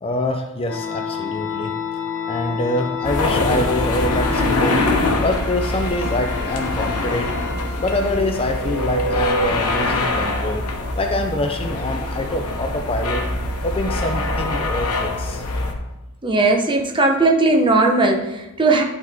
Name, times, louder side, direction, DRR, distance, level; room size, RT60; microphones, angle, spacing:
voice 1, 0.0-1.7 2.2-4.8 5.2-7.3 7.8-10.6 11.0-13.2 13.6-15.4, left 1 dB, 25° left, 4 dB, 0.5 m, -25 dB
sound 1, 0.7-9.5, left 4 dB, 55° left, 1.0 m, -29 dB
sound 2, 3.0-15.7, left 2 dB, 85° left, 1.0 m, -24 dB
voice 2, 16.2-18.8, right 2 dB, 20° right, 2 dB, 0.8 m, -17 dB
11.0 x 4.0 x 3.4 m, 0.97 s
head